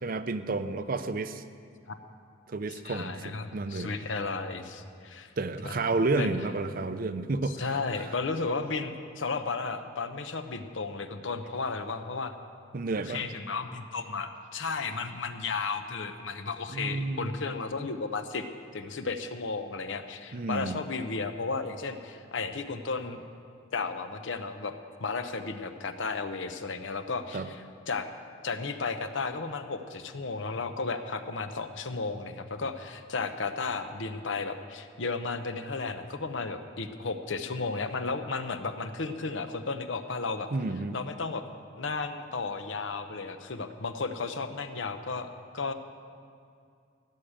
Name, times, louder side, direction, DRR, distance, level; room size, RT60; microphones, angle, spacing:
voice 1, 0.0-1.4 2.5-3.9 5.4-7.6 12.7-13.3 16.7-17.3 20.3-20.8 27.3-27.5 40.5-41.0, right 3 dB, 45° right, 11 dB, 0.5 m, -31 dB
voice 2, 2.7-5.3 5.6-6.3 7.5-12.3 13.1-18.5 18.7-23.2 23.7-24.7 25.0-28.1 28.4-40.5 40.9-41.4 41.8-45.7, left 4 dB, 70° left, 8 dB, 0.8 m, -34 dB
16.0 x 6.6 x 8.7 m, 2.3 s
head